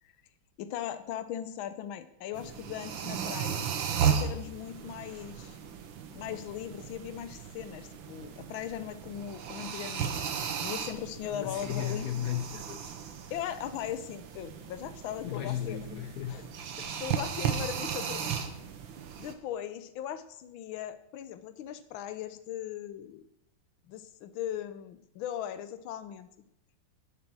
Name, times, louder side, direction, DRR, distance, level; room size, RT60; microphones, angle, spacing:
voice 1, 0.6-3.7 4.0-5.6 6.1-10.1 10.6-12.1 13.3-15.8 16.3-16.5 17.0-18.4 19.2-23.2 23.9-26.3, left 10 dB, 85° left, 12 dB, 1.5 m, -39 dB
sound 1, 2.3-19.3, right 7 dB, 80° right, 1.7 m, -35 dB
voice 2, 11.3-12.9 15.2-16.5 16.8-16.9, left 11 dB, 65° left, 8 dB, 1.0 m, -35 dB
10.5 x 7.5 x 6.2 m, 0.81 s
omnidirectional pair, 2.2 m